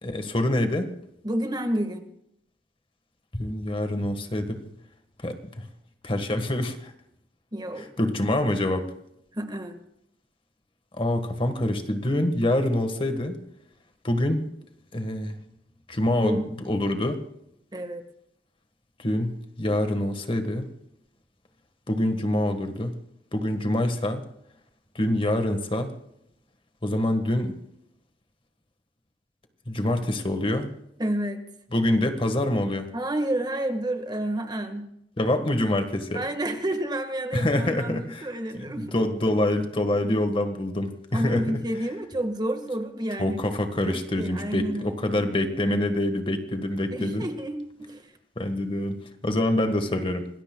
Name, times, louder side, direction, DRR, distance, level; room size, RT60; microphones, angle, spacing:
voice 1, 0.0-0.9 3.3-4.6 5.2-5.6 6.0-6.9 8.0-8.9 11.0-13.4 14.0-14.4 14.9-15.4 15.9-17.2 19.0-20.7 21.9-22.9 23.3-24.2 24.9-25.9 26.8-27.6 29.7-30.7 31.7-32.9 35.2-36.2 37.3-38.3 38.5-38.7 38.9-41.6 43.2-47.3 48.4-49.0 49.2-50.3, left 1 dB, 30° left, 7 dB, 1.5 m, -26 dB
voice 2, 1.2-2.0 7.5-7.9 9.3-9.8 16.2-16.5 17.7-18.0 31.0-31.5 32.9-34.9 36.1-38.9 41.1-43.4 43.8-45.2 46.9-48.1, right 1 dB, 25° right, 6 dB, 1.5 m, -30 dB
26.5 x 20.0 x 2.3 m, 0.77 s
head